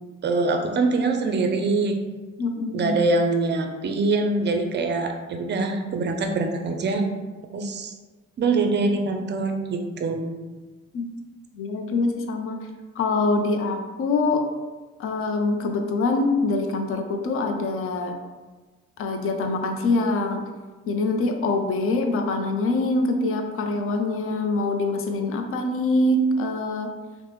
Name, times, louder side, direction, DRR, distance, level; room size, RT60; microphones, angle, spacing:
voice 1, 0.2-2.0 2.7-7.1 7.5-7.9 8.4-10.4, right 3 dB, 35° right, 5 dB, 0.4 m, -24 dB
voice 2, 2.4-3.1 10.9-11.1 11.5-12.6 13.0-14.4 15.0-18.2 19.0-20.4 20.9-26.9, left 2 dB, 45° left, 4 dB, 0.4 m, -24 dB
2.9 x 2.0 x 3.2 m, 1.3 s
cardioid pair, 90°, 30 cm